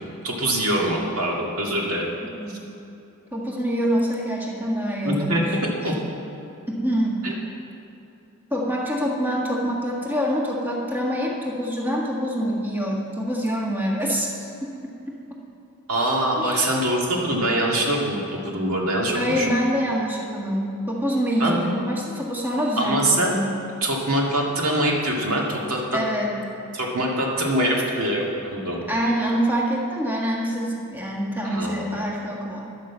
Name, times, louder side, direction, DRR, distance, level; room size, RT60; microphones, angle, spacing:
voice 1, 0.2-2.1 5.0-5.9 7.2-7.4 15.9-19.5 21.4-21.6 22.8-23.3 23.8-26.0 26.7-28.3 28.5-28.8 31.4-32.0, right 1 dB, 75° right, -2 dB, 2.1 m, -24 dB
voice 2, 3.3-5.6 6.7-7.2 8.5-14.7 16.4-16.6 19.1-23.4 25.9-26.4 28.9-32.7, equal, 10° right, -3 dB, 1.5 m, -25 dB
11.0 x 9.8 x 7.3 m, 2.8 s
head